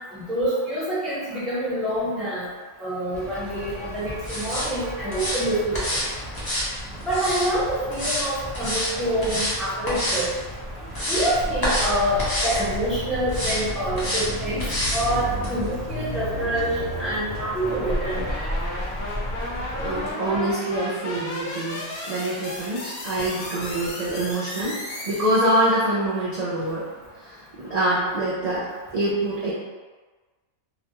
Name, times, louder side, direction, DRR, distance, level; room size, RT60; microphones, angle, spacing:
voice 1, 0.1-2.5 2.8-6.1 7.0-10.3 11.1-14.6 14.9-18.2, right 1 dB, ahead, -11 dB, 0.9 m, -26 dB
sound 1, 3.1-20.1, equal, 30° right, 0.8 m, -35 dB
sound 2, 4.2-4.7 5.1-5.4 5.7-6.1 6.3-7.5 7.9-8.3 8.5-8.9 9.2-9.6 9.9-10.3 10.7-11.3 11.6-11.9 12.2-12.6 13.3-13.6 14.0-14.3 14.6-15.0 15.4-15.5, equal, 30° left, 0.4 m, -27 dB
sound 3, 11.4-25.8, left 1 dB, 65° left, 0.7 m, -34 dB
voice 2, 19.8-24.8 25.1-26.9 27.3-29.5, right 1 dB, 55° right, -9 dB, 0.4 m, -25 dB
2.3 x 2.2 x 2.8 m, 1.3 s
omnidirectional pair, 1.2 m